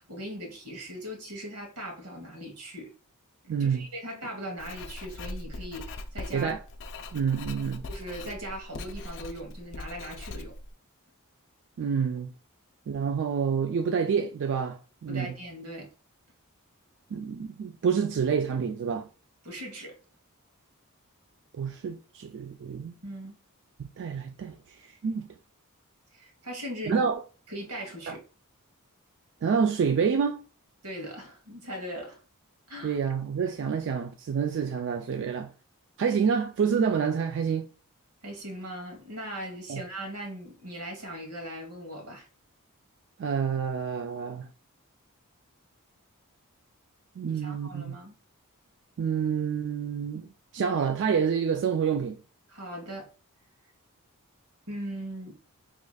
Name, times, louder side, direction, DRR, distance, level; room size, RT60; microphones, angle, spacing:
voice 1, 0.0-2.9 3.6-6.6 7.9-10.6 15.1-15.9 19.4-20.0 23.0-23.4 26.1-27.1 27.5-28.2 30.8-32.2 32.7-33.0 38.2-42.3 47.4-48.1 52.5-53.1 54.7-55.4, equal, 90° right, 1.5 m, -39 dB
voice 2, 3.5-3.9 6.3-6.6 7.1-7.8 11.8-12.3 12.9-15.3 17.1-19.1 21.5-22.9 23.8-25.3 26.9-27.2 28.1-28.2 29.4-30.4 32.8-35.5 36.0-37.7 39.7-39.8 43.2-44.5 47.2-48.0 49.0-52.2, right 6 dB, 55° right, 0.3 m, -28 dB
Writing, 4.6-10.7, left 2 dB, 55° left, 0.5 m, -41 dB
4.8 x 3.1 x 2.3 m
head